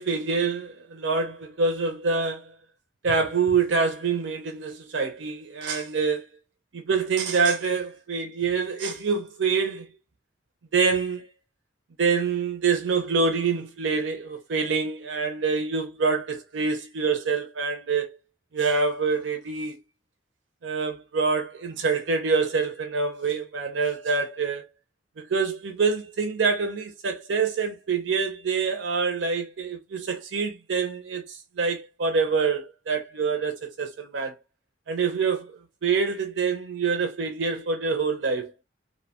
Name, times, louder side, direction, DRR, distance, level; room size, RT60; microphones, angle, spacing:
voice 1, 0.0-2.5 3.0-6.3 6.7-9.9 10.7-11.3 12.0-18.1 18.5-19.8 20.6-24.6 25.2-34.3 34.9-38.5, right 5 dB, 75° right, 0.5 m, -26 dB
2.7 x 2.2 x 2.8 m
head